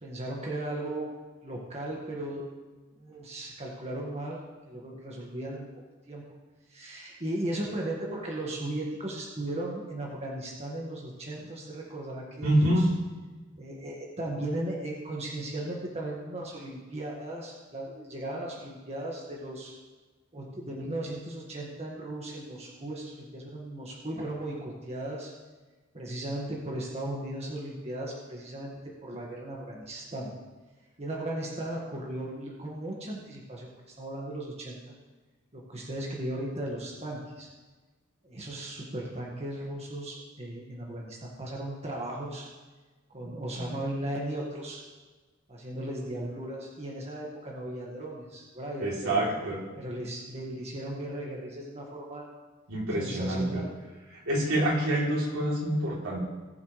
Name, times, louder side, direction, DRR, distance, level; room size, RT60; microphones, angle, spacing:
voice 1, 0.0-1.1 1.4-2.5 2.9-4.4 4.7-5.7 6.1-6.2 6.7-12.9 13.6-19.7 20.3-25.3 25.9-28.7 29.0-30.3 31.0-34.9 35.5-37.5 38.2-42.5 43.1-44.8 45.5-49.2 49.8-52.3 53.0-53.7, right 1 dB, 30° right, -3 dB, 1.7 m, -36 dB
voice 2, 12.4-12.9 43.5-43.7 48.8-49.6 52.7-53.6 54.2-56.2, right 1 dB, 85° right, -4 dB, 3.3 m, -26 dB
19.0 x 7.2 x 3.3 m, 1.3 s
head